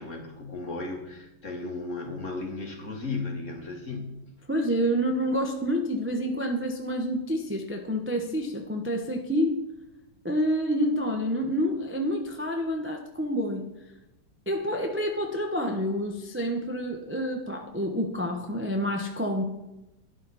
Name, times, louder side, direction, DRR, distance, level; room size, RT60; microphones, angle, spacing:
voice 1, 0.0-4.2, left 3 dB, 35° left, 2 dB, 2.1 m, -35 dB
voice 2, 4.5-9.6 10.2-13.7 14.5-19.4, equal, 10° right, 2 dB, 0.9 m, -28 dB
12.5 x 11.0 x 4.3 m, 0.92 s
omnidirectional pair, 2.3 m